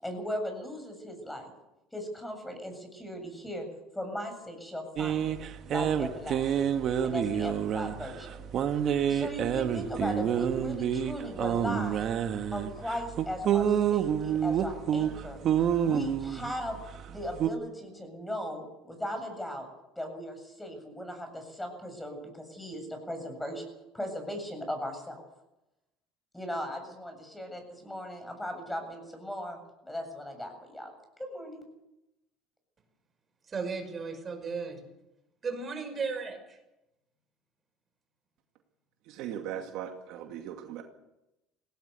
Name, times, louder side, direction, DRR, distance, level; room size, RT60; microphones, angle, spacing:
voice 1, 0.0-1.5 1.9-3.7 3.9-5.4 5.6-6.7 7.0-8.4 9.1-12.1 12.5-15.4 15.8-16.8 17.1-19.7 20.0-23.6 23.9-25.2 26.3-29.6 29.8-30.9 31.2-31.7, equal, 5° left, 5 dB, 7.5 m, -37 dB
sound 1, 5.0-17.5, right 9 dB, 50° right, 1.5 m, -29 dB
voice 2, 33.5-34.8 35.4-36.6, right 4 dB, 30° right, 6 dB, 5.7 m, -35 dB
voice 3, 39.0-40.8, right 10 dB, 70° right, 4 dB, 2.4 m, -38 dB
18.5 x 18.0 x 8.2 m, 0.92 s
supercardioid pair, 95°, 0 cm